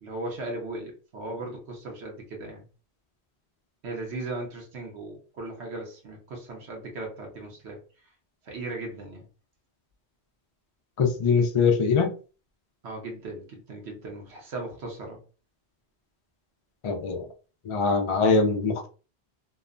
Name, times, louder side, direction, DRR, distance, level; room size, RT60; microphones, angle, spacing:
voice 1, 0.0-2.6 3.8-7.8 8.5-9.2 12.8-15.2, right 2 dB, 80° right, 0 dB, 1.1 m, -37 dB
voice 2, 11.0-12.1 16.8-17.3 17.7-18.9, left 4 dB, 50° left, 3 dB, 0.3 m, -22 dB
2.9 x 2.1 x 2.4 m, 0.35 s
omnidirectional pair, 1.1 m